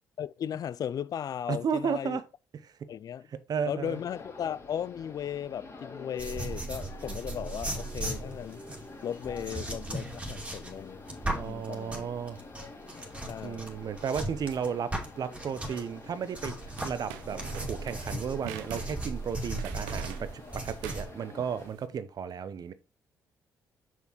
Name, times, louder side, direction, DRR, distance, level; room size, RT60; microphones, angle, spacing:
voice 1, 0.2-2.2 2.9-3.3 3.7-8.6 9.0-12.1 13.3-13.7, left 9 dB, 55° left, 0.3 m, -36 dB
voice 2, 1.5-2.2 2.5-2.9 3.3-4.0 11.3-12.4 13.4-16.6 16.8-22.7, right 7 dB, 55° right, 0.8 m, -34 dB
sound 1, 3.8-21.7, left 3 dB, 40° left, 2.8 m, -48 dB
sound 2, 6.2-15.9 16.3-21.0, right 2 dB, 15° right, 2.5 m, -37 dB
sound 3, 16.8-21.8, right 10 dB, 90° right, 0.6 m, -45 dB
6.1 x 5.7 x 3.1 m
hypercardioid pair, 50°, 8 cm